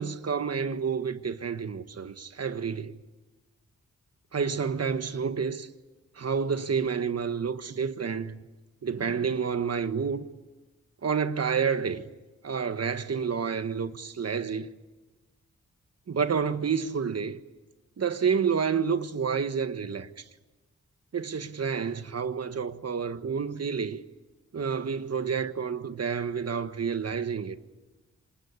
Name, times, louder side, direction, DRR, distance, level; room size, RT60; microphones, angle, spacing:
voice 1, 0.0-2.9 4.3-5.7 6.1-8.4 8.8-10.2 11.0-12.0 12.4-14.7 16.1-17.4 18.0-20.2 21.1-24.0 24.5-27.6, right 6 dB, 55° right, 1.5 m, -29 dB
26.5 x 20.5 x 9.7 m
cardioid pair, 70°, 30 cm